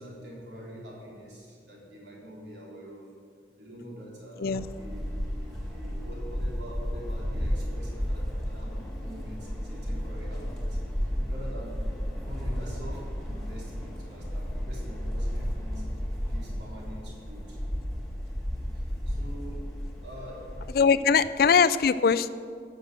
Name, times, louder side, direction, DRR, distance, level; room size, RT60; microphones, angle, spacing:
voice 1, 0.0-3.1 3.6-8.7 9.0-10.8 11.3-17.6 18.7-19.6 20.0-20.5 20.7-21.2, equal, 75° right, -4 dB, 3.6 m, -45 dB
sound 1, 4.5-20.7, equal, 5° left, 1.9 m, -33 dB
voice 2, 20.7-22.3, left 6 dB, 55° left, 14 dB, 0.4 m, -21 dB
12.0 x 6.6 x 7.8 m, 2.2 s
head